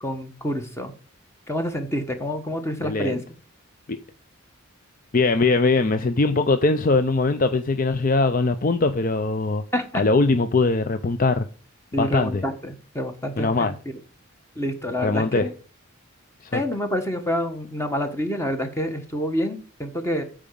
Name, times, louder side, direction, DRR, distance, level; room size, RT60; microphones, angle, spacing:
voice 1, 0.0-0.9 1.5-3.2 9.7-10.0 11.9-13.9 14.6-15.5 16.5-20.2, equal, 15° left, 1.4 m, -27 dB
voice 2, 2.8-3.1 3.9-4.0 5.1-9.6 9.9-11.4 12.0-12.4 13.4-13.7 15.0-15.5 16.5-16.6, left 3 dB, 40° left, 0.5 m, -21 dB
8.9 x 5.0 x 6.9 m
head